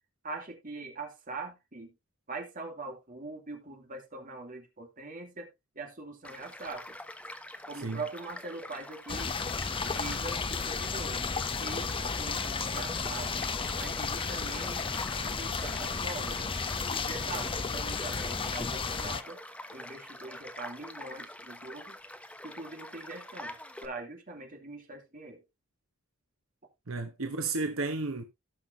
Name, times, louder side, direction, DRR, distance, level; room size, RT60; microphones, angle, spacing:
voice 1, 0.2-1.9 2.3-5.5 5.7-6.9 7.7-9.4 10.0-11.3 11.6-16.5 16.9-19.4 19.7-22.0 22.4-23.6 23.8-25.4, right 3 dB, 40° right, 2.7 m, -42 dB
Child speech kid speaking / Stream / Car passing by, 6.2-23.9, left 1 dB, 5° left, 1.0 m, -46 dB
sound 1, 9.1-19.2, left 5 dB, 25° left, 0.6 m, -33 dB
voice 2, 26.9-28.2, right 3 dB, 75° right, 1.1 m, -32 dB
17.5 x 5.9 x 2.7 m
head